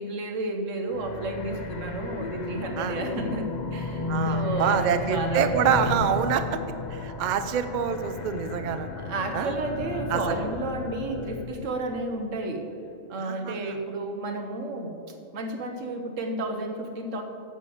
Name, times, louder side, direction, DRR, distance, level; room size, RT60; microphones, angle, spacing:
voice 1, 0.0-5.6 9.0-12.7 13.1-15.0 15.3-17.2, right 2 dB, 75° right, 5 dB, 1.3 m, -32 dB
sound 1, 0.9-11.7, left 3 dB, 45° left, 0.7 m, -33 dB
voice 2, 4.1-6.6 6.9-8.9 9.3-9.5 10.1-10.4 13.2-13.7, right 8 dB, 55° right, 9 dB, 0.5 m, -26 dB
10.5 x 4.9 x 7.0 m, 2.7 s
omnidirectional pair, 1.3 m